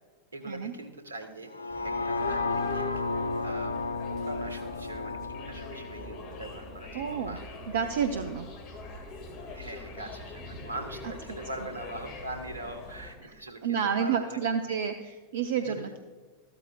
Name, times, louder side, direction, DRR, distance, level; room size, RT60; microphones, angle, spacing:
voice 1, 0.3-1.5 1.8-3.8 4.2-5.2 5.5-7.5 9.5-14.4 15.6-15.8, right 2 dB, 85° right, 7 dB, 1.4 m, -42 dB
sound 1, 1.5-7.6 8.1-8.2, left 3 dB, 85° left, 0.5 m, -33 dB
sound 2, 1.7-13.1, left 2 dB, 45° left, 2.2 m, -42 dB
voice 2, 6.9-7.4 7.7-8.5 13.2-13.3 13.6-16.0, right 7 dB, 65° right, 8 dB, 0.6 m, -30 dB
14.0 x 13.0 x 2.4 m, 1.4 s
figure-of-eight pair, 90°, 0 cm